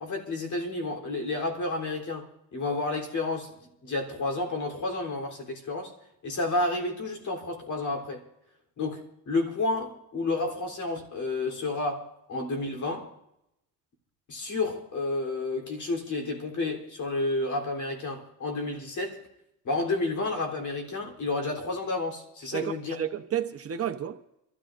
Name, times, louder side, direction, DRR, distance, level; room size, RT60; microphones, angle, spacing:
voice 1, 0.0-5.9 6.2-8.3 8.8-13.1 14.3-19.2 19.6-23.0, left 2 dB, 50° left, 3.5 m, -31 dB
voice 2, 22.5-24.4, right 9 dB, 40° right, 0.9 m, -32 dB
28.5 x 13.5 x 2.5 m
cardioid pair, 120°, 38 cm